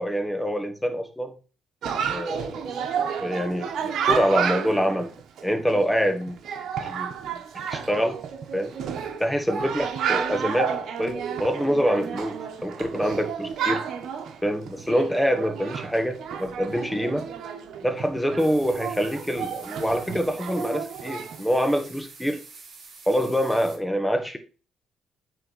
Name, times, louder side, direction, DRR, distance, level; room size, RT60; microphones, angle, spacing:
voice 1, 0.0-1.3 2.1-2.5 3.2-5.1 5.4-6.4 6.8-7.1 7.7-8.2 8.5-8.7 9.2-12.4 12.6-13.8 14.4-17.3 17.8-22.4 23.1-24.4, equal, 5° left, 1.5 m, -25 dB
Chatter, 1.8-21.4, right 7 dB, 70° right, 1.2 m, -31 dB
sound 1, 18.4-23.8, right 4 dB, 45° right, 3.0 m, -47 dB
8.9 x 3.7 x 6.3 m
cardioid pair, 90°, 0 cm